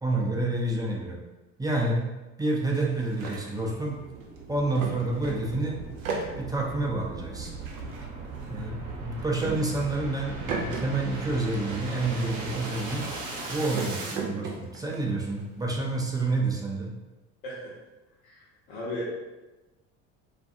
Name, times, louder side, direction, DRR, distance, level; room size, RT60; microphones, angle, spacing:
voice 1, 0.0-1.2 1.6-2.1 2.4-4.0 4.5-5.8 6.4-7.5 8.5-13.1 13.5-16.9, right 2 dB, 10° right, -2 dB, 0.4 m, -28 dB
sound 1, 2.5-5.6 5.8-10.9 11.1-15.7, right 4 dB, 85° right, 0.6 m, -38 dB
sound 2, 2.9-14.2, right 3 dB, 50° right, 0.8 m, -39 dB
voice 2, 17.4-17.8 18.2-19.1, equal, 60° left, -6 dB, 0.9 m, -36 dB
2.5 x 2.2 x 2.6 m, 1.1 s
hypercardioid pair, 75°, 41 cm